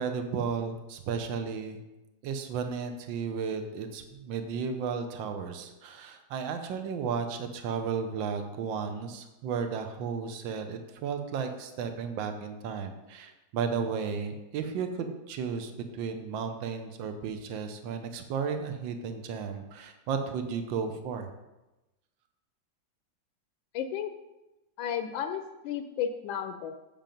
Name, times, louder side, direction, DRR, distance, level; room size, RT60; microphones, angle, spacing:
voice 1, 0.0-1.8 2.2-21.3, right 6 dB, 80° right, 6 dB, 1.5 m, -34 dB
voice 2, 23.7-24.1 24.8-26.8, left 8 dB, 90° left, 8 dB, 1.4 m, -33 dB
7.5 x 7.2 x 5.1 m, 1.0 s
omnidirectional pair, 2.1 m